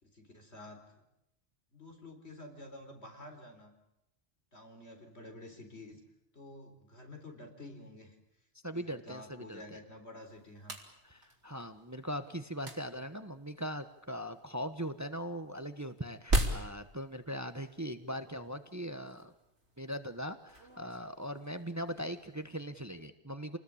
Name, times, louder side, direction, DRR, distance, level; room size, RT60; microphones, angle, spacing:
voice 1, 0.0-1.0 1.7-3.7 4.5-6.0 6.3-8.2 8.7-10.8, left 1 dB, 70° left, 5 dB, 4.5 m, -50 dB
voice 2, 8.6-9.6 11.0-19.3 19.8-23.6, equal, 15° right, 9 dB, 1.2 m, -40 dB
sound 1, 10.2-23.0, right 1 dB, 85° right, 3.7 m, -41 dB
28.5 x 20.0 x 8.7 m, 0.84 s
omnidirectional pair, 1.2 m